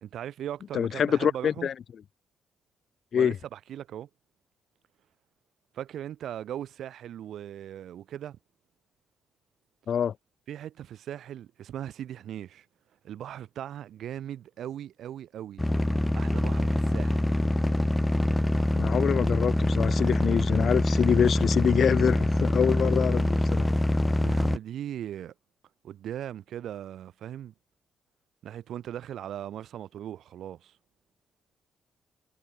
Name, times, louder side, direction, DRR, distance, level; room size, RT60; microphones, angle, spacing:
voice 1, 0.0-1.7 3.1-4.1 5.7-8.4 10.5-12.7 13.0-15.6 16.1-17.3 24.2-25.3 25.8-27.5 28.4-30.7, right 11 dB, 75° right, 3.5 m, -39 dB
voice 2, 0.7-1.7 3.1-3.4 9.9-10.1 18.7-23.7, left 8 dB, 60° left, 0.7 m, -25 dB
sound 1, 15.6-24.6, left 1 dB, 10° left, 1.2 m, -25 dB
cardioid pair, 100°, 0 cm